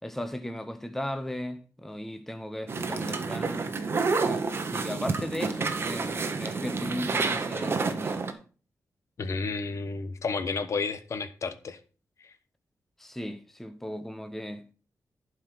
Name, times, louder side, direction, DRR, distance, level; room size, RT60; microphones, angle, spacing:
voice 1, 0.0-3.7 4.3-8.4 13.0-14.7, left 1 dB, 5° left, 0.8 m, -37 dB
sound 1, 2.7-8.3, right 4 dB, 40° right, 1.2 m, -29 dB
voice 2, 9.2-11.8 12.2-12.3, left 4 dB, 50° left, 1.1 m, -31 dB
11.5 x 5.0 x 5.9 m
wide cardioid pair, 150°, 6 cm